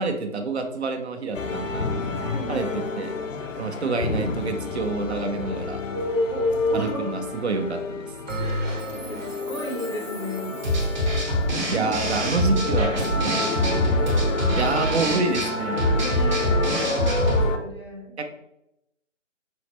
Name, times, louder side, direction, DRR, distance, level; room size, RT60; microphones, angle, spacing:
voice 1, 0.0-1.9 2.5-3.1 3.6-5.8 6.7-8.1 11.7-13.4 14.6-15.9 18.2-18.3, right 4 dB, 60° right, 7 dB, 0.6 m, -27 dB
sound 1, 1.3-17.6, left 3 dB, 85° left, 0.6 m, -30 dB
voice 2, 2.2-2.9 5.9-7.1 8.4-10.6 11.4-11.9 12.8-14.7 15.9-18.1, left 1 dB, 25° left, -3 dB, 0.4 m, -31 dB
Bell, 8.3-11.1, equal, 85° right, 1.0 m, -33 dB
sound 2, 10.6-17.5, equal, 35° right, 0.9 m, -24 dB
5.5 x 2.1 x 3.1 m, 0.84 s
figure-of-eight pair, 145°, 37 cm